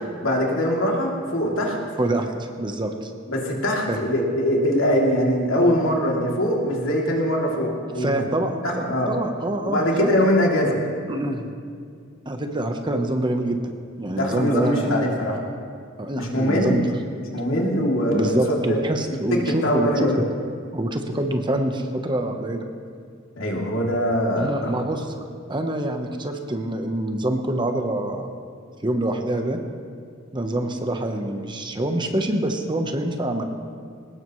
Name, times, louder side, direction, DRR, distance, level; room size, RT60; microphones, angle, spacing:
voice 1, 0.2-1.8 3.3-8.1 8.6-9.1 9.6-10.8 14.1-15.4 16.2-16.8 17.3-18.8 19.1-19.2 19.5-20.2 23.4-24.7, equal, 75° left, -2 dB, 3.0 m, -22 dB
voice 2, 2.0-3.1 3.9-4.0 8.0-10.1 11.1-11.5 12.2-13.6 14.0-15.0 16.0-16.9 18.1-20.1 20.7-22.6 24.3-28.3 28.8-29.6 30.3-33.4, right 1 dB, 25° right, 5 dB, 1.1 m, -26 dB
21.5 x 19.0 x 3.2 m, 2.2 s
head